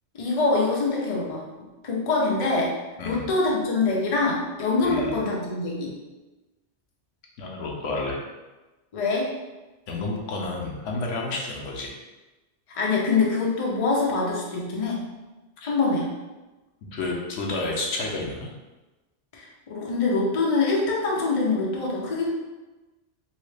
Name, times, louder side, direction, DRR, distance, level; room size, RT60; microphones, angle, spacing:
voice 1, 0.2-1.5 1.8-2.7 3.0-5.9 8.9-9.3 12.7-15.0 15.6-16.1 19.3-22.3, left 3 dB, 40° left, -3 dB, 0.6 m, -24 dB
voice 2, 4.8-5.2 7.4-8.2 9.9-12.0 15.6-15.7 16.9-18.5, left 2 dB, 85° left, -1 dB, 1.0 m, -30 dB
3.0 x 2.8 x 3.2 m, 1.1 s
omnidirectional pair, 1.2 m